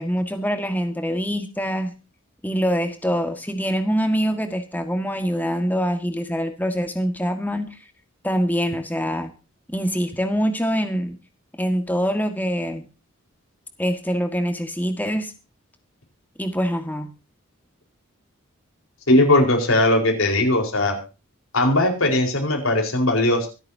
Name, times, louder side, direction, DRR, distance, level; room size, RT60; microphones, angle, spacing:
voice 1, 0.0-1.9 2.4-7.7 8.2-9.3 9.7-11.2 11.6-12.8 13.8-15.3 16.4-17.1, equal, 10° left, 7 dB, 1.8 m, -24 dB
voice 2, 19.1-21.0 21.5-23.5, left 1 dB, 80° left, 2 dB, 4.6 m, -19 dB
24.5 x 8.5 x 2.8 m, 0.32 s
head